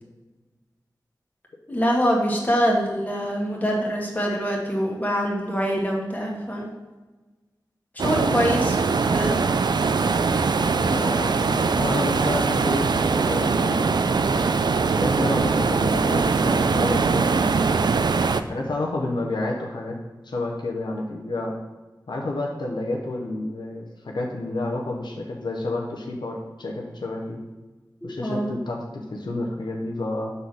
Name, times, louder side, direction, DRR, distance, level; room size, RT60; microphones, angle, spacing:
voice 1, 1.7-6.7 7.9-8.8 9.1-9.4 28.0-28.5, equal, 20° left, -3 dB, 1.6 m, -24 dB
sound 1, 8.0-18.4, right 4 dB, 70° right, 0.3 m, -22 dB
voice 2, 10.8-13.9 14.9-17.8 18.5-20.0 20.2-21.6 22.1-27.4 28.0-30.3, left 2 dB, 90° left, 0 dB, 0.8 m, -30 dB
5.5 x 4.1 x 6.1 m, 1.2 s
wide cardioid pair, 60°, 8 cm